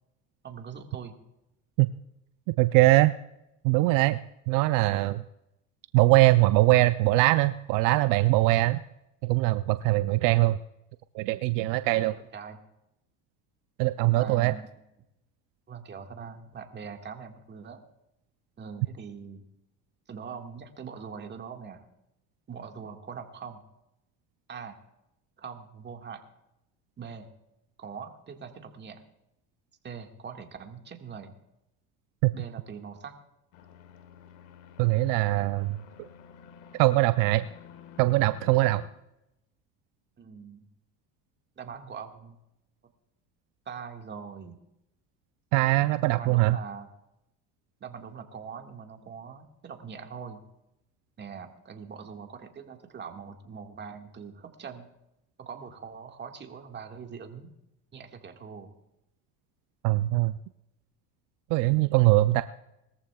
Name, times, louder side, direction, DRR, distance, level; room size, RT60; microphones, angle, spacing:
voice 1, 0.4-1.2 12.0-12.6 14.0-14.7 15.7-17.8 18.6-19.4 20.1-21.9 22.5-23.6 24.5-24.8 25.4-26.2 27.0-27.3 27.8-29.0 29.8-31.3 32.3-33.1 40.2-40.7 41.6-42.4 43.7-44.6 46.1-46.9 47.8-50.4 51.2-54.9 55.4-57.5 57.9-58.7, right 6 dB, 30° right, 4 dB, 1.8 m, -42 dB
voice 2, 2.5-3.2 3.6-4.2 4.5-5.2 5.9-8.8 9.2-10.6 11.1-12.1 13.8-14.5 32.2-32.3 34.8-36.1 36.7-37.4 38.0-38.8 45.5-46.6 59.8-60.3 61.5-62.4, right 19 dB, 70° right, 12 dB, 0.5 m, -22 dB
sound 1, 33.5-38.9, left 8 dB, 90° left, 1.6 m, -51 dB
20.5 x 14.0 x 2.3 m, 0.86 s
supercardioid pair, 110°, 33 cm